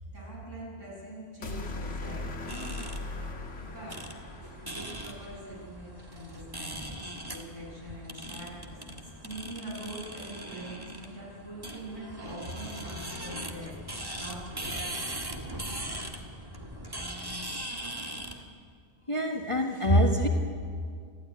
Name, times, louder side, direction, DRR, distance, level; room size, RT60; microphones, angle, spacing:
voice 1, 0.0-2.7 3.6-4.0 4.6-14.8, right 1 dB, 90° right, -4 dB, 7.9 m, -43 dB
sound 1, 1.4-5.7, left 2 dB, 75° left, 1.9 m, -39 dB
sound 2, 2.5-18.4, right 1 dB, 20° right, 1.8 m, -40 dB
voice 2, 19.1-20.3, equal, 25° left, 1 dB, 1.6 m, -24 dB
29.0 x 12.5 x 9.6 m, 2.1 s
omnidirectional pair, 1.2 m